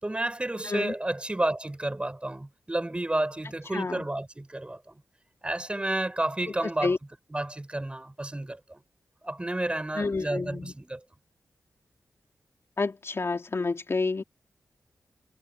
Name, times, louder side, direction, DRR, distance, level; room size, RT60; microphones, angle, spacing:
voice 1, 0.0-5.0 5.4-7.0 7.3-8.8 9.2-11.0, right 1 dB, 20° right, 5.8 m, -31 dB
voice 2, 3.7-4.1 6.8-7.0 10.0-10.7 12.8-14.2, left 3 dB, 50° left, 3.5 m, -29 dB
cardioid pair, 65°, 6 cm